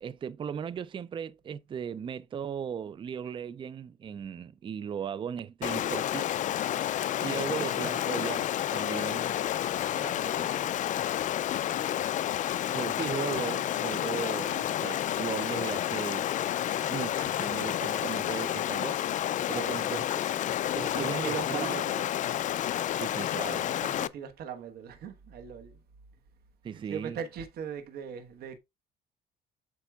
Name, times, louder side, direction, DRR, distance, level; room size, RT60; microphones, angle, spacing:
voice 1, 0.0-6.4 7.2-9.3 12.7-16.3 16.9-19.0 19.5-20.0 20.3-20.4 20.7-21.8 23.0-23.7 26.6-27.2, right 7 dB, 30° right, 0.4 m, -37 dB
Stream, 5.6-24.1, left 11 dB, 50° left, 0.4 m, -30 dB
voice 2, 7.1-7.5 9.8-10.7 19.5-19.9 20.8-22.1 23.1-23.4 23.7-25.8 26.7-28.6, right 7 dB, 65° right, 1.3 m, -40 dB
8.2 x 6.1 x 2.3 m
cardioid pair, 110°, 17 cm